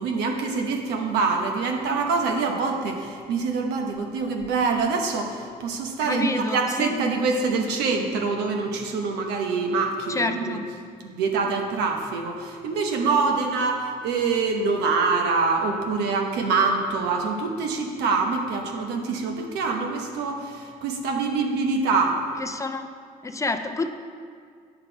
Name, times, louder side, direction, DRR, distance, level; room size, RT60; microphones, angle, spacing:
voice 1, 0.0-10.6 11.0-22.2, right 4 dB, 90° right, 3 dB, 1.0 m, -25 dB
voice 2, 6.1-6.9 10.1-10.6 22.4-22.9 23.2-23.9, left 3 dB, 20° left, 7 dB, 0.5 m, -28 dB
9.0 x 5.9 x 4.5 m, 2.2 s
cardioid pair, 110°, 17 cm